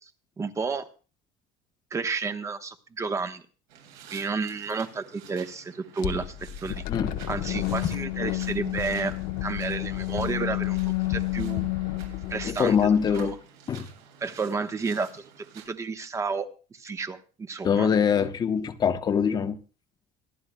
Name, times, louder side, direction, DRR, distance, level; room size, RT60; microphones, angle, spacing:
voice 1, 0.4-0.9 1.9-3.5 4.1-6.4 6.6-6.8 7.3-11.7 12.3-13.4 14.2-17.9, right 4 dB, 20° right, 1.1 m, -31 dB
sound 1, 3.7-15.7, right 8 dB, 80° right, 8.0 m, -51 dB
sound 2, 6.0-13.3, left 15 dB, 65° left, 1.0 m, -30 dB
voice 2, 12.4-13.3 13.7-13.9 17.6-19.6, left 7 dB, 25° left, 0.9 m, -23 dB
26.5 x 11.5 x 2.2 m
cardioid pair, 155°, 15 cm